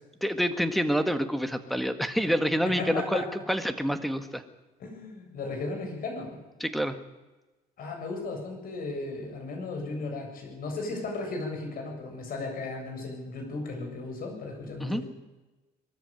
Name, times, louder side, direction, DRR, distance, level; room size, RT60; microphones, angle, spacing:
voice 1, 0.2-4.4 6.6-7.0 14.8-15.0, equal, ahead, 9 dB, 1.8 m, -27 dB
voice 2, 2.6-3.3 4.8-6.4 7.8-15.0, left 3 dB, 60° left, 3 dB, 7.5 m, -35 dB
22.0 x 14.0 x 9.0 m, 1.1 s
cardioid pair, 110°, 17 cm